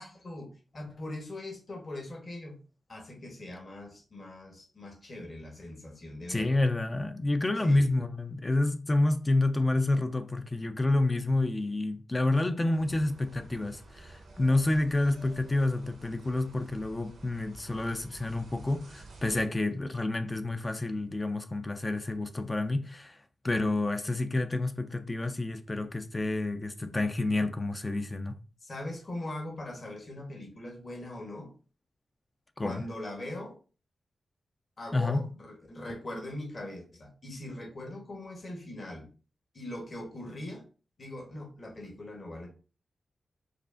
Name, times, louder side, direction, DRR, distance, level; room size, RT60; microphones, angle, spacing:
voice 1, 0.0-2.6 2.9-6.6 7.6-7.9 28.6-31.5 32.6-33.6 34.8-39.1 39.5-40.6 41.0-42.5, left 1 dB, 40° left, 1.0 m, -41 dB
voice 2, 6.3-23.2 23.4-28.4 32.6-32.8 34.9-35.2, left 2 dB, 20° left, 0.3 m, -29 dB
sound 1, 12.7-19.4, right 2 dB, 85° right, 0.8 m, -51 dB
4.7 x 2.4 x 2.4 m
wide cardioid pair, 105°, 0 cm